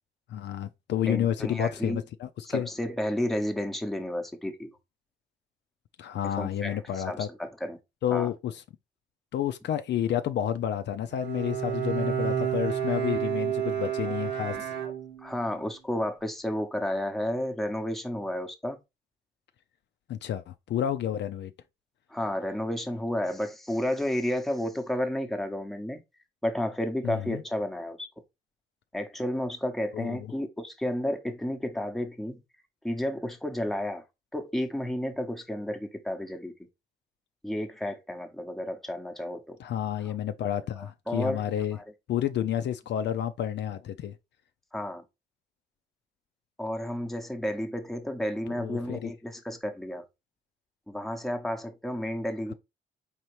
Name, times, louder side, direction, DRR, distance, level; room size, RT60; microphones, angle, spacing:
voice 1, 0.3-2.7 6.0-7.3 8.0-8.6 9.3-14.7 20.1-21.5 27.0-27.4 29.9-30.3 39.6-41.8 42.1-44.1 48.6-49.1, left 10 dB, 60° left, 0.4 m, -30 dB
voice 2, 1.1-2.0 2.4-4.7 6.2-7.8 8.1-8.3 14.1-14.4 14.8-14.9 15.2-18.8 22.1-26.0 26.4-28.1 28.9-32.4 32.8-34.0 34.3-36.5 37.4-39.6 40.0-40.1 40.8-41.5 41.7-41.8 44.7-45.0 46.6-50.1 50.9-52.5, left 1 dB, ahead, 0.8 m, -32 dB
Bowed string instrument, 11.1-15.5, right 9 dB, 75° right, 1.1 m, -30 dB
4.3 x 3.5 x 3.1 m
cardioid pair, 90°, 20 cm